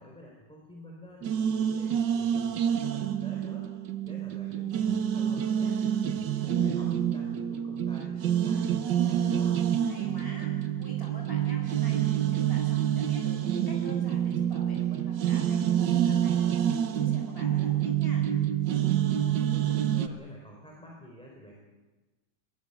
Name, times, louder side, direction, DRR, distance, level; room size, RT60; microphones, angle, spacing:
voice 1, 0.0-3.7 4.0-5.8 6.0-9.6 19.1-21.5, equal, 5° left, -1 dB, 4.3 m, -49 dB
sound 1, 1.2-20.1, right 9 dB, 75° right, 1.7 m, -27 dB
voice 2, 9.8-18.2, left 1 dB, 30° left, -1 dB, 7.7 m, -48 dB
23.0 x 19.5 x 8.2 m, 1.2 s
omnidirectional pair, 1.9 m